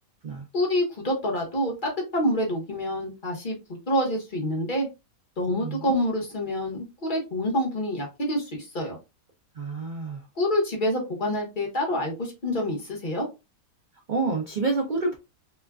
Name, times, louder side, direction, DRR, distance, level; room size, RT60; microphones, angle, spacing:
voice 1, 0.5-4.9 5.4-8.9 10.4-13.2, left 1 dB, 35° left, 1.0 m, -27 dB
voice 2, 5.6-6.0 9.6-10.2 14.1-15.2, right 3 dB, 80° right, 0.4 m, -28 dB
3.0 x 2.3 x 2.3 m
omnidirectional pair, 1.7 m